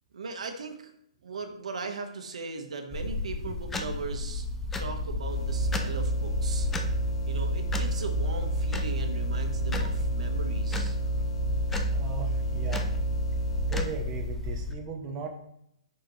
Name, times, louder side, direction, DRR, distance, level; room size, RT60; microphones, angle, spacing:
voice 1, 0.1-0.9 1.2-4.5 4.8-6.7 7.3-11.0, right 4 dB, 85° right, 5 dB, 1.3 m, -38 dB
sound 1, 2.9-14.7, left 3 dB, 5° left, 0.4 m, -33 dB
sound 2, 5.2-13.9, right 2 dB, 50° left, 0.8 m, -30 dB
voice 2, 11.9-12.9 13.7-15.3, right 6 dB, 15° right, 2 dB, 0.7 m, -37 dB
7.7 x 6.2 x 3.1 m, 0.74 s
hypercardioid pair, 175°, 3 cm